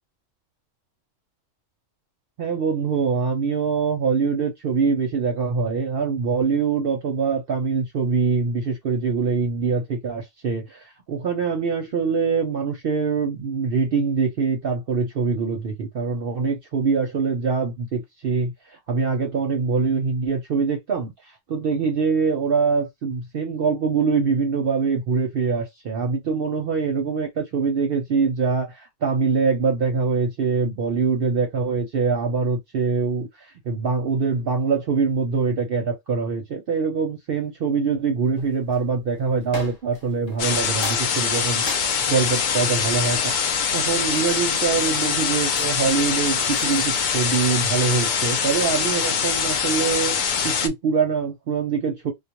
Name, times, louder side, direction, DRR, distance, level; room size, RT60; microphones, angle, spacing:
voice 1, 2.4-43.3 43.7-52.1, right 5 dB, 55° right, 0.7 m, -24 dB
sound 1, 38.4-38.8 39.5-40.5 40.8-44.1 44.8-47.4, left 2 dB, 40° left, 0.7 m, -39 dB
sound 2, 40.4-50.7, left 6 dB, 80° left, 0.4 m, -23 dB
2.3 x 2.1 x 2.8 m
omnidirectional pair, 1.4 m